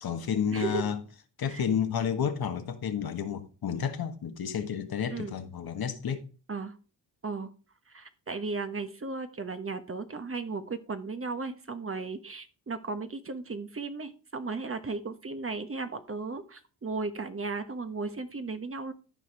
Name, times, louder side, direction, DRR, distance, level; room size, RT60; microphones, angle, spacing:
voice 1, 0.0-1.0 1.4-6.3, left 7 dB, 60° left, 1.5 m, -31 dB
voice 2, 0.5-0.9 1.5-1.6 5.1-5.3 6.5-6.7 7.2-7.5 7.9-18.9, right 3 dB, 30° right, 1.2 m, -35 dB
12.5 x 4.8 x 4.7 m
cardioid pair, 70°, 42 cm